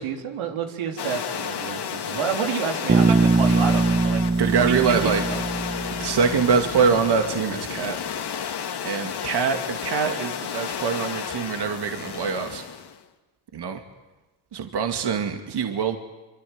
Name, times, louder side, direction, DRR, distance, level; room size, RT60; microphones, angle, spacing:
voice 1, 0.0-4.2 4.6-5.4, right 7 dB, 85° right, 4 dB, 3.6 m, -29 dB
sound 1, 1.0-13.0, left 7 dB, 55° left, 2.2 m, -32 dB
Bass guitar, 2.9-6.8, right 3 dB, 20° right, 1.4 m, -22 dB
voice 2, 4.4-5.2 6.0-8.0 8.8-12.6 13.5-13.8 14.5-16.0, right 6 dB, 55° right, 5 dB, 2.4 m, -24 dB
25.0 x 25.0 x 9.6 m, 1.2 s
cardioid pair, 90°, 47 cm